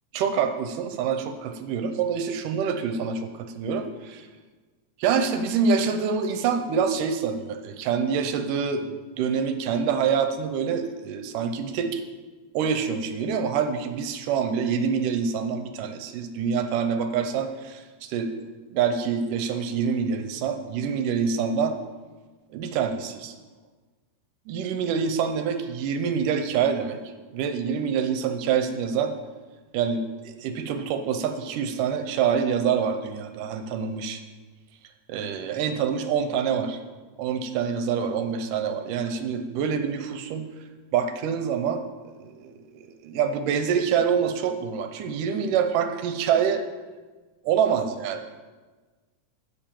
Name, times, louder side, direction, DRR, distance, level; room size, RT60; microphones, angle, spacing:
voice 1, 0.1-4.3 5.0-8.8 9.2-12.0 12.5-18.3 18.7-21.8 22.5-23.4 24.5-27.0 27.3-29.1 29.7-34.2 35.1-36.8 37.2-40.5 40.9-41.8 42.2-46.6 47.5-48.2, right 6 dB, 80° right, 7 dB, 2.3 m, -26 dB
10.0 x 6.9 x 7.5 m, 1.3 s
omnidirectional pair, 3.8 m